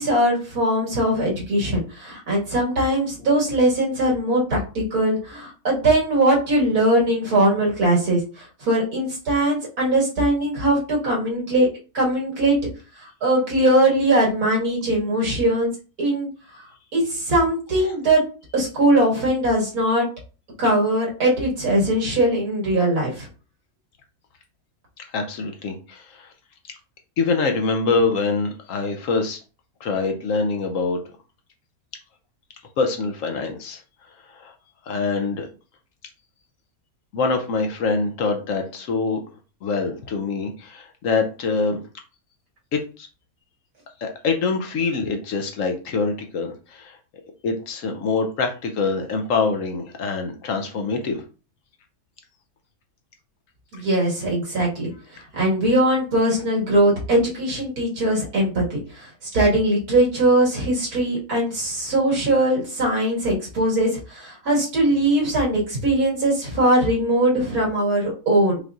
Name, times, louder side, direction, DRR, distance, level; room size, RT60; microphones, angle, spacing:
voice 1, 0.0-11.7 11.9-12.6 13.0-15.7 16.0-16.3 16.9-18.2 18.5-20.1 20.6-23.3 53.7-54.9 55.3-59.1 59.3-68.6, right 1 dB, 75° right, -4 dB, 2.3 m, -20 dB
voice 2, 25.1-26.3 27.2-29.4 29.8-31.0 32.8-33.8 34.3-34.5 34.9-35.5 37.1-39.2 39.6-41.8 42.7-43.1 44.0-47.0 47.4-51.2, left 4 dB, 65° left, 4 dB, 1.0 m, -24 dB
5.1 x 2.9 x 2.4 m, 0.34 s
omnidirectional pair, 1.6 m